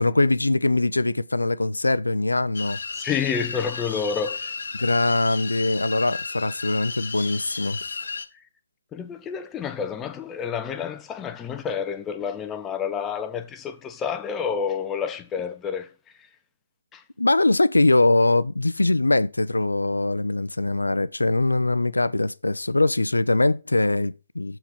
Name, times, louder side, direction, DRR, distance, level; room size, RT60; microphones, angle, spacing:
voice 1, 0.0-2.8 4.8-7.8 17.2-24.6, left 2 dB, 75° left, 0.5 m, -22 dB
sound 1, 2.5-8.3, left 4 dB, 55° left, 0.8 m, -33 dB
voice 2, 3.0-4.6 8.9-15.9 16.9-17.0, left 7 dB, 10° left, 0.4 m, -29 dB
6.9 x 4.5 x 5.0 m
figure-of-eight pair, 140°, 0 cm